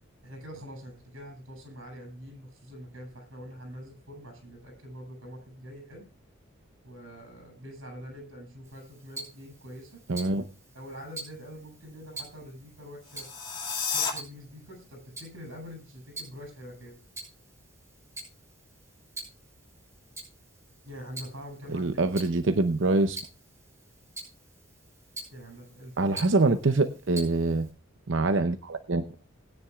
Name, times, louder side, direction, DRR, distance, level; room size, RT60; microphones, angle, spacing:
voice 1, 0.2-6.1 6.8-10.0 10.7-13.3 13.9-17.0 20.8-21.9 25.3-26.2, equal, 90° right, 4 dB, 7.8 m, -44 dB
Tick-tock, 8.6-27.7, right 2 dB, 15° right, 4.5 m, -47 dB
voice 2, 10.1-10.4 21.7-23.2 26.0-27.7 28.1-29.0, right 3 dB, 70° right, 9 dB, 0.7 m, -25 dB
sound 1, 13.0-14.1, left 5 dB, 25° left, 2.3 m, -31 dB
20.0 x 9.9 x 2.4 m, 0.30 s
head